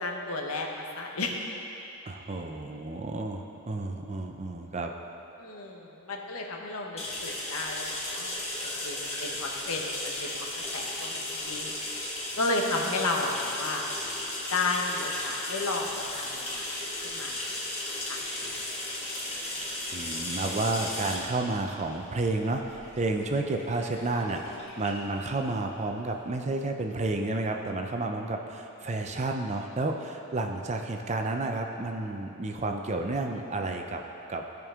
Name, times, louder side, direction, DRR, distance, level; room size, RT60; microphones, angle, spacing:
voice 1, 0.0-1.4 5.4-8.3 8.8-10.3 10.7-11.7 12.4-13.8 14.5-16.7 17.0-17.5 18.0-18.2, left 3 dB, 70° left, 1 dB, 1.0 m, -32 dB
voice 2, 2.1-4.9 19.9-34.0 34.3-34.4, right 2 dB, 30° right, 3 dB, 0.5 m, -31 dB
sound 1, 7.0-26.4, left 1 dB, 30° left, 1.5 m, -36 dB
15.0 x 5.3 x 3.7 m, 2.9 s
head